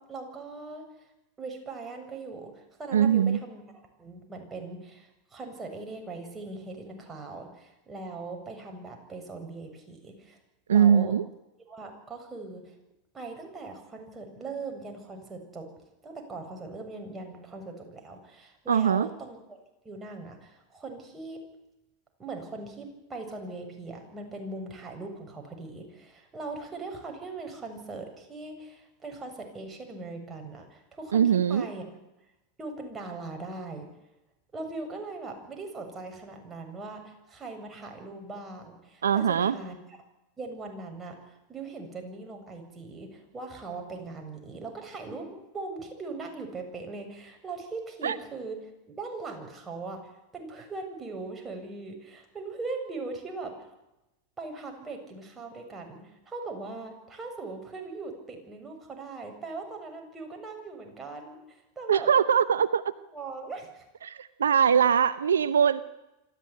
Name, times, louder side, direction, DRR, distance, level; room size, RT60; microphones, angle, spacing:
voice 1, 0.1-0.8 1.4-10.4 10.7-11.1 11.7-12.7 13.1-15.7 16.0-21.4 22.2-31.9 32.6-33.9 34.5-39.8 40.4-53.7 54.4-62.1 63.1-63.8, right 3 dB, 20° right, 3 dB, 7.5 m, -40 dB
voice 2, 2.9-3.4 10.7-11.3 18.7-19.1 31.1-31.7 39.0-39.5 48.0-48.1 61.9-62.8 64.0-65.8, right 8 dB, 85° right, 16 dB, 0.8 m, -22 dB
26.0 x 14.5 x 9.8 m, 0.95 s
hypercardioid pair, 100°, 0 cm